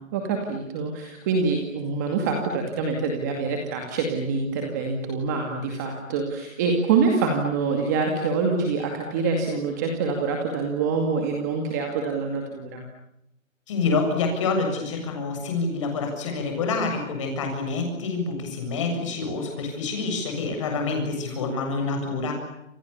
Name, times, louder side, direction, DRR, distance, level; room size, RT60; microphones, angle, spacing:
voice 1, 0.1-12.8, right 4 dB, 15° right, 3 dB, 2.3 m, -25 dB
voice 2, 13.7-22.3, left 3 dB, 25° left, 3 dB, 7.4 m, -27 dB
29.0 x 28.5 x 7.1 m, 0.83 s
hypercardioid pair, 170°, 39 cm